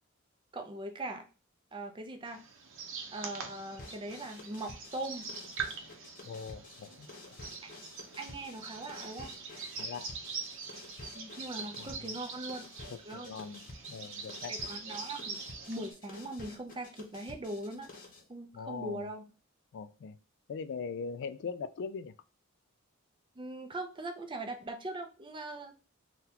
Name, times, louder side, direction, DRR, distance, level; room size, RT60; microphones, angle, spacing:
voice 1, 0.5-1.3 1.7-2.5 3.1-5.3 7.6-7.7 8.2-9.3 11.1-12.7 13.0-13.3 14.5-17.9 18.3-19.3 23.4-25.7, right 2 dB, 25° right, 5 dB, 0.5 m, -41 dB
sound 1, 2.2-15.9, right 5 dB, 65° right, 0.7 m, -43 dB
sound 2, 3.8-18.3, left 2 dB, 40° left, 0.8 m, -51 dB
voice 2, 6.3-7.4 9.8-10.1 11.8-12.0 12.9-14.5 18.5-19.1 19.7-20.2 20.5-22.1, left 5 dB, 60° left, 12 dB, 0.3 m, -41 dB
3.9 x 2.3 x 2.8 m, 0.33 s
head